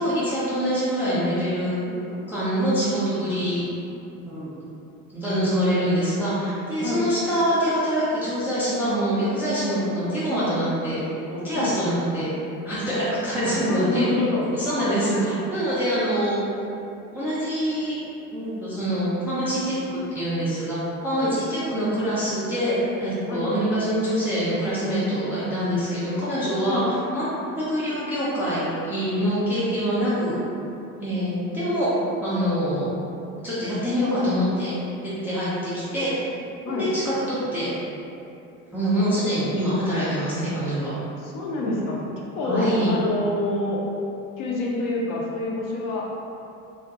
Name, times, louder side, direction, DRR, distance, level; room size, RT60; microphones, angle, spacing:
voice 1, 0.0-1.8 2.3-3.6 4.3-4.5 5.1-11.0 11.3-12.3 12.6-14.1 14.5-16.4 17.1-18.0 18.3-20.8 21.0-26.8 27.1-27.2 27.6-30.3 31.0-31.9 32.2-32.9 33.4-34.7 35.0-36.1 36.8-37.7 38.7-40.9 42.4-42.9, equal, 5° right, -12 dB, 0.3 m, -25 dB
voice 2, 1.8-2.2 5.4-5.5 6.8-7.1 11.5-11.8 13.4-14.5 14.8-15.4 21.2-21.4 23.3-23.5 26.7-26.9 36.6-36.9 41.2-42.0 42.3-43.8 44.4-46.1, left 2 dB, 45° left, -3 dB, 0.6 m, -27 dB
2.5 x 2.4 x 2.4 m, 2.7 s
figure-of-eight pair, 70°, 46 cm